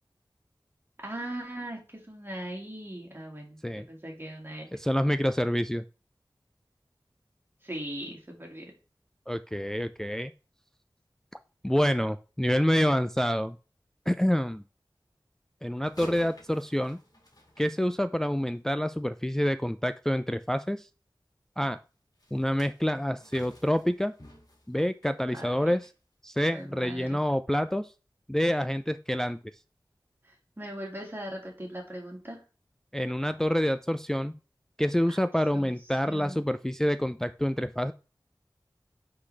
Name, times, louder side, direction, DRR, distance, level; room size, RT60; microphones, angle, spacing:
voice 1, 1.0-4.7 7.6-8.7 25.3-25.7 26.5-27.2 30.2-32.4 35.1-35.2 35.5-35.7 36.0-36.4, right 1 dB, 25° right, 0 dB, 1.9 m, -39 dB
voice 2, 4.7-5.8 9.3-10.3 11.6-13.6 14.1-14.6 15.6-17.0 17.6-20.9 21.6-21.8 22.3-24.1 24.7-25.9 26.2-27.9 28.3-29.4 32.9-34.4 34.8-37.9, equal, 5° left, 10 dB, 0.3 m, -27 dB
sound 1, 15.8-18.4 22.2-26.0 26.4-26.6 27.2-27.3, left 1 dB, 50° left, 2.1 m, -51 dB
9.5 x 3.9 x 3.2 m, 0.34 s
wide cardioid pair, 50°, 8 cm